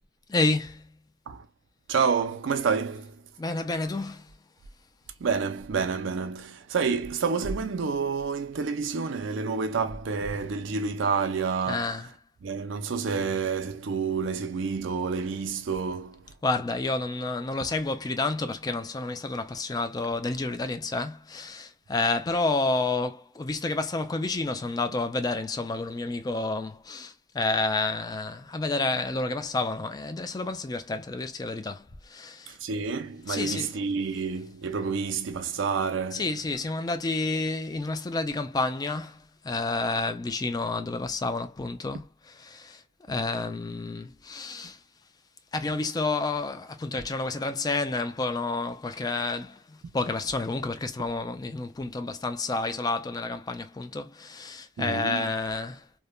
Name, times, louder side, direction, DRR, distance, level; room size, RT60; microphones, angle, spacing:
voice 1, 0.3-0.9 3.4-4.3 11.7-12.1 16.4-32.6 33.3-33.7 36.1-42.0 42.4-42.8 43.1-44.8 45.5-55.9, left 3 dB, 20° left, 0.3 m, -30 dB
voice 2, 1.9-3.2 5.2-12.0 12.4-16.3 32.5-36.3 54.8-55.3, right 5 dB, 70° right, 0.4 m, -29 dB
3.0 x 2.1 x 2.2 m
head